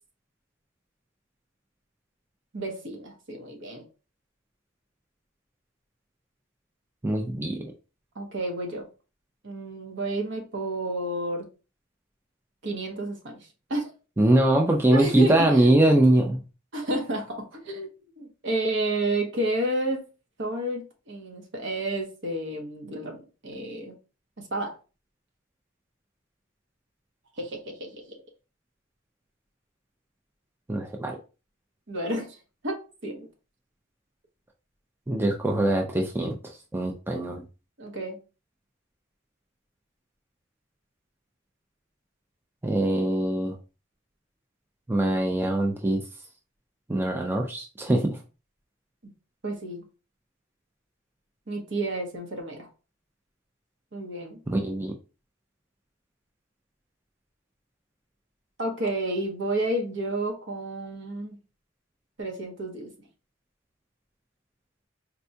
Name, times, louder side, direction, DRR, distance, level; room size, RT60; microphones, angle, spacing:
voice 1, 2.5-3.9 8.1-8.9 9.4-11.5 12.6-13.9 14.9-15.7 16.7-17.9 18.2-20.0 20.4-24.0 24.4-24.8 27.4-28.2 31.9-32.4 32.6-33.3 37.8-38.2 49.4-49.8 51.5-52.7 53.9-54.4 58.6-61.4 62.2-62.9, right 1 dB, 60° right, 1.0 m, -31 dB
voice 2, 7.0-7.6 14.2-16.4 30.7-31.2 35.1-36.4 36.7-37.4 42.6-43.5 44.9-46.0 46.9-48.2 54.5-54.9, right 1 dB, 10° right, 0.4 m, -22 dB
4.3 x 2.2 x 2.7 m
head